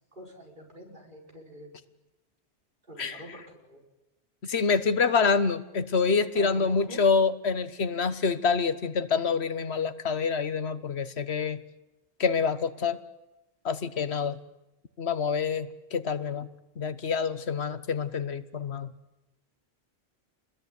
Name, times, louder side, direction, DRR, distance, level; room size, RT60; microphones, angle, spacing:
voice 1, 0.1-1.8 2.9-3.8 6.3-7.0, equal, 50° right, 0 dB, 5.6 m, -45 dB
voice 2, 4.4-11.6 12.2-13.0 13.6-14.4 15.0-16.5 16.8-18.9, left 5 dB, 85° left, 13 dB, 1.5 m, -27 dB
28.5 x 21.0 x 9.5 m, 0.98 s
omnidirectional pair, 1.1 m